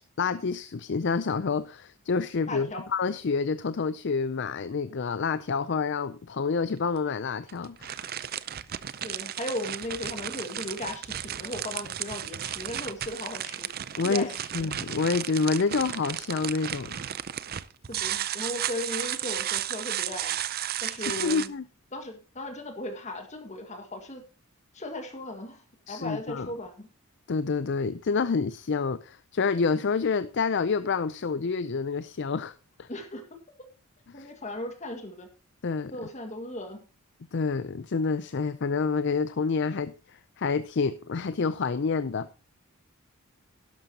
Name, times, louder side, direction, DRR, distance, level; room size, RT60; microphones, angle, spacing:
voice 1, 0.2-8.1 14.0-14.3 14.5-16.9 21.2-21.6 25.9-26.5 27.3-32.9 34.2-34.3 35.6-35.9 37.3-42.3, left 4 dB, 55° left, 0.5 m, -28 dB
voice 2, 2.5-2.9 9.0-13.7 14.0-14.7 17.9-20.4 20.8-21.5 21.9-24.2 24.7-26.9 32.9-33.2 34.1-35.3 35.9-36.8, left 1 dB, 30° left, 1.9 m, -37 dB
Content warning, 6.6-6.7 7.5-21.5, right 11 dB, 45° right, 0.5 m, -34 dB
12.0 x 11.5 x 2.8 m
head